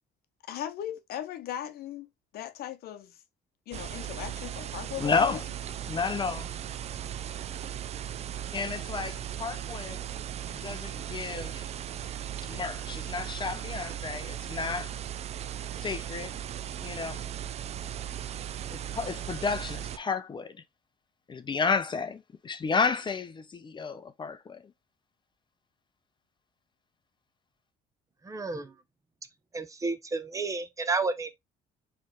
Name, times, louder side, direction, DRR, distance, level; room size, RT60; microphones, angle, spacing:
voice 1, 0.5-3.2 3.7-5.4, left 11 dB, 70° left, 0.8 m, -38 dB
sound 1, 3.7-20.0, right 10 dB, 40° right, 0.4 m, -37 dB
voice 2, 5.0-5.4 5.9-6.5 8.5-10.0 10.5-11.7 12.4-14.9 15.8-16.4 16.8-17.2 18.7-20.6 21.3-24.6, left 5 dB, 30° left, 0.6 m, -31 dB
voice 3, 28.3-28.7 29.5-31.4, right 3 dB, 20° right, 0.7 m, -31 dB
4.2 x 3.3 x 3.4 m
cardioid pair, 110°, 17 cm